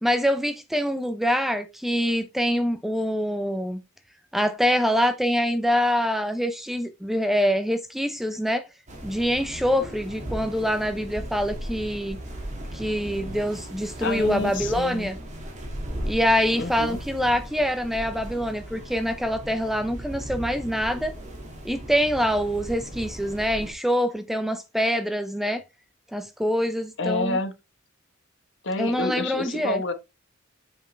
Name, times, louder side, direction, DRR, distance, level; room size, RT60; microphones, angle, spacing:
voice 1, 0.0-3.8 4.3-8.7 9.0-12.2 12.7-15.2 16.0-21.1 21.6-25.6 26.1-27.4 28.8-29.8, equal, ahead, 0.5 m, -25 dB
sound 1, 8.9-23.7, right 1 dB, 35° right, 2.2 m, -37 dB
voice 2, 14.0-15.1 16.6-17.0 27.0-27.5 28.6-29.9, left 3 dB, 60° left, 1.2 m, -28 dB
7.4 x 5.3 x 3.3 m
head